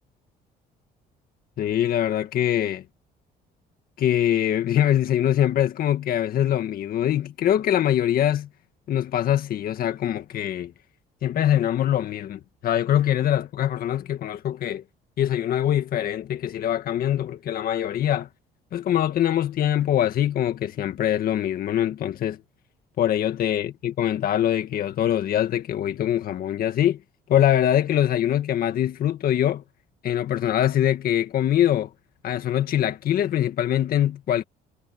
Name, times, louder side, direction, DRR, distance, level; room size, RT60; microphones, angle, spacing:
voice 1, 1.6-2.8 4.0-8.5 8.9-10.7 11.2-14.8 15.2-18.3 18.7-22.4 23.0-27.0 27.3-29.6 30.0-31.9 32.2-34.4, left 11 dB, 60° left, 1.9 m, -23 dB
cardioid pair, 110°, 17 cm